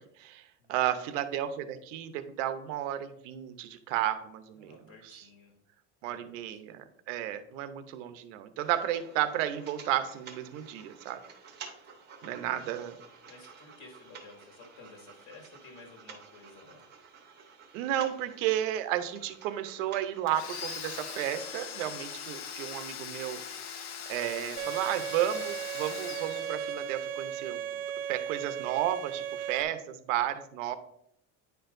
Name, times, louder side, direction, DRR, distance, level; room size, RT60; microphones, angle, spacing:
voice 1, 0.0-4.8 5.1-5.2 6.0-11.2 12.2-13.0 17.7-23.7 24.1-27.6 28.1-30.8, right 11 dB, 85° right, 10 dB, 0.8 m, -33 dB
voice 2, 4.6-5.5 6.0-6.6 12.2-12.6 13.3-16.9, left 3 dB, 65° left, 1 dB, 1.9 m, -53 dB
sound 1, 8.6-22.9, right 5 dB, 30° right, 0.9 m, -52 dB
Domestic sounds home sounds, 20.3-27.1, left 7 dB, 50° left, 0.9 m, -41 dB
Bowed string instrument, 24.6-29.6, right 9 dB, 50° right, 0.4 m, -36 dB
9.6 x 4.5 x 2.6 m, 0.73 s
cardioid pair, 165°, 37 cm